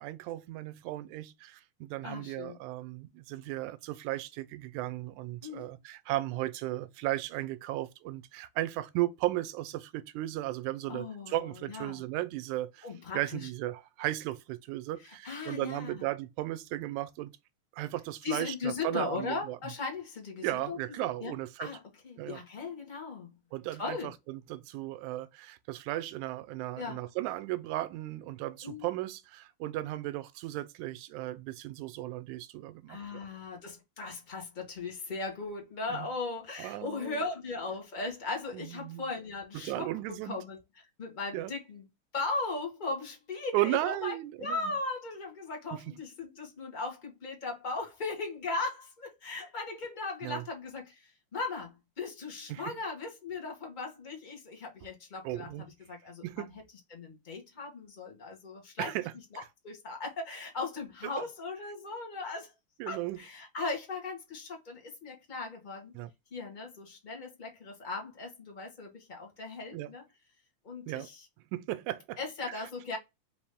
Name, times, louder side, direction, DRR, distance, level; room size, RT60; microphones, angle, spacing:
voice 1, 0.0-12.9 13.1-17.3 17.8-19.6 20.4-21.7 22.2-22.4 23.5-33.0 35.9-36.1 36.6-37.2 38.5-39.0 39.5-40.4 41.3-41.5 43.5-44.7 45.7-45.8 50.2-50.4 52.5-52.8 55.3-55.6 56.2-56.5 58.8-59.1 62.8-63.2 66.0-66.1 69.7-69.9 70.9-71.1 71.5-72.2 72.5-72.6, right 16 dB, 85° right, 2.0 m, -35 dB
voice 2, 2.0-2.6 5.4-5.7 10.9-12.0 12.8-13.5 15.0-16.0 18.2-21.3 21.6-23.4 23.8-24.1 26.8-27.0 28.6-28.9 32.9-40.6 41.0-41.8 42.1-56.6 56.9-58.9 59.3-62.5 62.9-65.9 66.3-70.0 70.6-71.3 72.2-73.0, left 3 dB, 50° left, 0.5 m, -38 dB
4.9 x 2.7 x 3.4 m
omnidirectional pair, 3.3 m